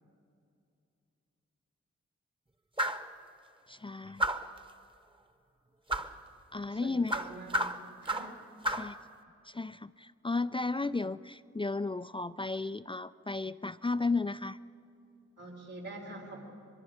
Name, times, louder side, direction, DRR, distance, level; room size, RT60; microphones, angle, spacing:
sound 1, 2.8-3.1 4.2-4.6 5.9-6.1 7.1-8.4 8.6-8.9, right 1 dB, 15° right, 1.0 m, -32 dB
voice 1, 3.7-4.3 6.5-7.3 8.7-9.0 9.4-14.6, left 3 dB, 20° left, 13 dB, 0.4 m, -34 dB
voice 2, 6.7-7.7 8.0-8.3 15.4-16.4, right 2 dB, 90° right, -4 dB, 4.4 m, -45 dB
23.5 x 22.5 x 5.0 m, 2.6 s
cardioid pair, 45°, 30 cm